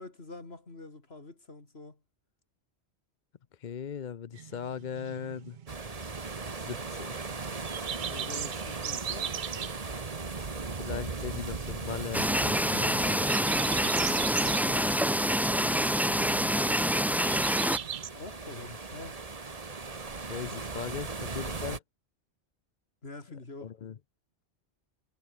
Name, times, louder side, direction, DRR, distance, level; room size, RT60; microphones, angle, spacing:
voice 1, 0.0-2.0 8.0-9.3 12.6-16.9 18.1-19.2 21.2-21.3 23.0-23.8, left 2 dB, 65° left, 3.6 m, -47 dB
voice 2, 3.6-5.6 6.7-7.2 10.8-13.1 20.2-21.8 23.6-23.9, left 7 dB, 50° left, 0.7 m, -39 dB
sound 1, 4.3-18.1, right 9 dB, 50° right, 0.7 m, -40 dB
sound 2, 5.7-21.8, right 3 dB, 35° right, 1.4 m, -39 dB
sound 3, 12.1-17.8, equal, ahead, 0.7 m, -26 dB
omnidirectional pair, 1.1 m